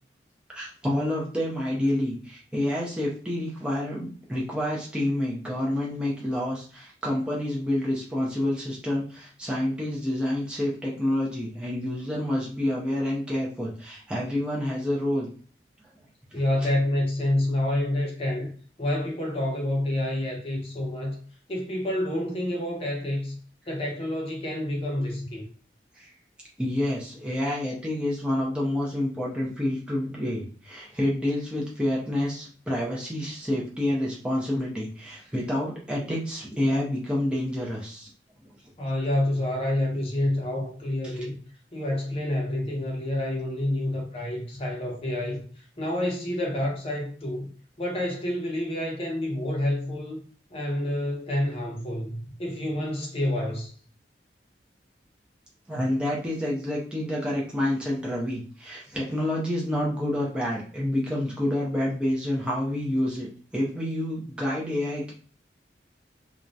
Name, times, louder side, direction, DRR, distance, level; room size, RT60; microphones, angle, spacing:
voice 1, 0.5-15.3 16.3-16.4 26.0-26.1 26.6-38.1 41.0-41.1 55.7-65.1, left 1 dB, 5° right, 0.4 m, -28 dB
voice 2, 16.3-18.5 18.8-21.2 21.5-23.4 23.7-25.4 38.8-41.4 41.7-45.4 45.8-47.5 47.8-50.2 50.5-53.7, left 1 dB, 30° left, 0.6 m, -28 dB
2.3 x 2.0 x 2.6 m
head